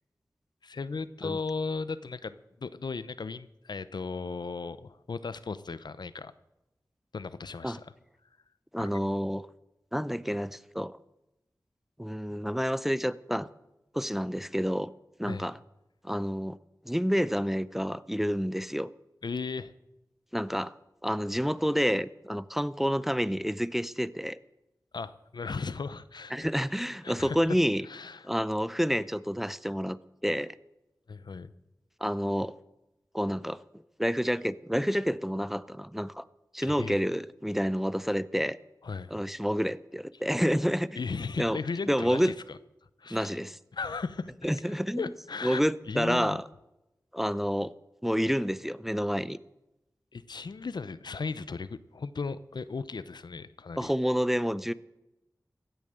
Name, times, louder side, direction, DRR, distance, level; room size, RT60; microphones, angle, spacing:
voice 1, 0.6-6.3 7.1-7.9 8.8-8.9 15.3-15.5 19.2-19.7 24.9-26.5 27.0-27.4 27.8-28.3 31.1-31.5 36.6-37.0 38.8-39.1 40.9-42.6 43.0-43.3 43.7-44.5 45.0-45.6 45.9-46.4 50.1-53.9, left 4 dB, 80° left, 15 dB, 0.8 m, -36 dB
voice 2, 8.7-9.5 9.9-11.0 12.0-13.5 13.9-14.9 15.2-15.6 16.0-16.6 16.8-18.9 20.3-20.7 21.0-24.4 26.3-27.9 28.2-30.5 32.0-32.5 33.1-33.6 34.0-36.2 36.5-38.6 39.1-40.9 41.4-41.6 41.9-42.3 43.1-43.6 44.4-45.1 45.4-46.4 47.1-47.7 48.0-49.4 53.8-54.7, equal, 5° right, 16 dB, 0.6 m, -29 dB
16.0 x 10.5 x 7.7 m, 0.93 s
wide cardioid pair, 55°, 7 cm